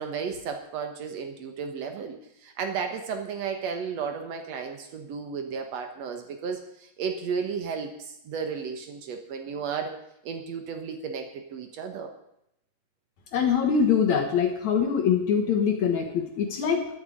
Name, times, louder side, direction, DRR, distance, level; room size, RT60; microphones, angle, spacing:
voice 1, 0.0-10.0 10.2-12.1, right 6 dB, 75° right, 5 dB, 1.5 m, -33 dB
voice 2, 13.3-16.9, left 7 dB, 65° left, 3 dB, 1.8 m, -23 dB
12.0 x 9.0 x 8.4 m, 0.79 s
omnidirectional pair, 4.9 m